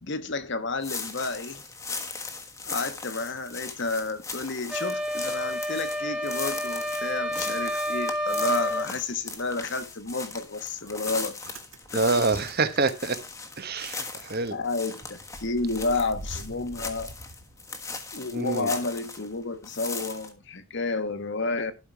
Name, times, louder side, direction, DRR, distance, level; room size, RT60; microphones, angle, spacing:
voice 1, 0.0-1.6 2.6-11.4 11.9-12.0 14.5-17.1 18.1-21.7, left 3 dB, 55° left, 1.2 m, -31 dB
sound 1, 0.8-19.3 19.6-20.3, left 4 dB, 15° left, 1.3 m, -38 dB
sound 2, 4.7-8.9, equal, 5° right, 1.6 m, -29 dB
Motor vehicle (road) / Engine starting, 7.2-8.4 8.7-13.3 13.7-13.8 14.0-18.1, right 1 dB, 65° right, 1.8 m, -46 dB
voice 2, 11.9-13.2 13.6-14.6 18.3-18.7, right 3 dB, 45° right, 1.1 m, -26 dB
12.0 x 5.7 x 4.6 m
head